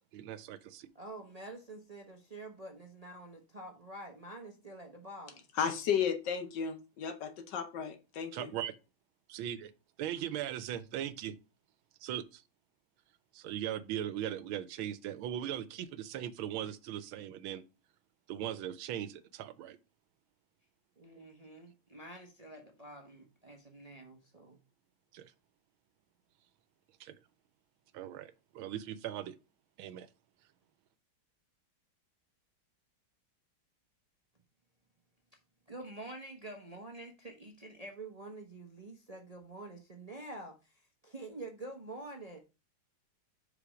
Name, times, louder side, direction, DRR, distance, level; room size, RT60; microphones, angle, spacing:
voice 1, 0.1-0.8 8.3-8.7 9.3-9.7 10.0-11.3 12.0-12.4 13.3-17.6 18.3-19.8 25.1-25.3 27.0-27.1 27.9-29.3 29.8-30.1, right 11 dB, 85° right, 1.5 m, -39 dB
voice 2, 0.9-5.5 21.0-24.6 35.7-42.4, right 2 dB, 35° right, 0.6 m, -47 dB
voice 3, 5.6-8.5, left 7 dB, 65° left, 1.4 m, -34 dB
5.1 x 5.1 x 4.8 m
omnidirectional pair, 2.2 m